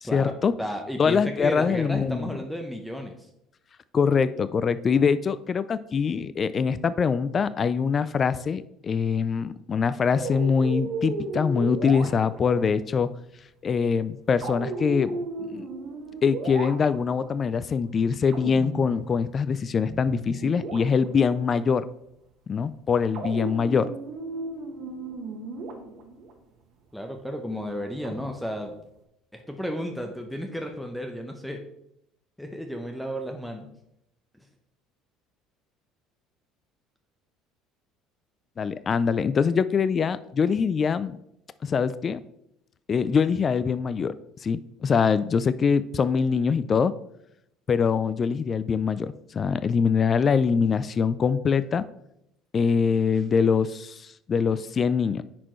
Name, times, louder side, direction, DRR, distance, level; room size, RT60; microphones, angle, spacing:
voice 1, 0.0-0.5 1.0-2.3 3.9-13.1 13.6-15.7 16.2-21.9 22.5-23.9 38.6-41.2 41.6-42.2 42.9-44.1 44.4-46.9 47.7-51.8 52.5-55.2, left 6 dB, 35° left, 15 dB, 0.3 m, -24 dB
voice 2, 0.6-3.3 26.9-28.7 29.3-31.6 32.4-33.7, equal, ahead, 4 dB, 0.8 m, -33 dB
sound 1, 10.1-12.6 14.4-17.3 18.3-19.6 19.8-21.4 23.1-26.3 28.0-28.8, right 3 dB, 60° right, 1.4 m, -35 dB
9.9 x 4.3 x 3.1 m, 0.79 s
supercardioid pair, 85°, 0 cm